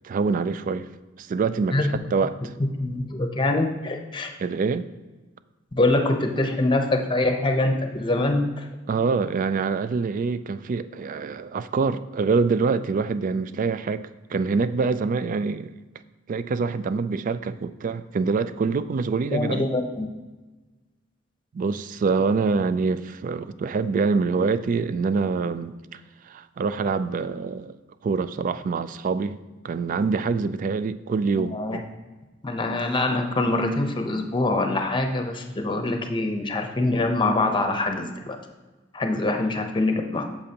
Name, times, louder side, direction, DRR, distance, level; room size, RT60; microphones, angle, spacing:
voice 1, 0.0-0.9 1.2-2.4 4.4-4.9 8.9-14.0 14.3-15.7 16.3-19.7 21.5-26.0 26.3-27.8 28.0-29.4 29.6-31.8 38.1-38.2, right 4 dB, 45° right, 13 dB, 0.3 m, -25 dB
voice 2, 2.6-4.3 5.7-8.6 19.3-20.1 31.4-31.8 32.4-38.4 38.9-40.2, left 2 dB, 25° left, 5 dB, 0.8 m, -24 dB
8.6 x 7.0 x 2.9 m, 1.2 s
head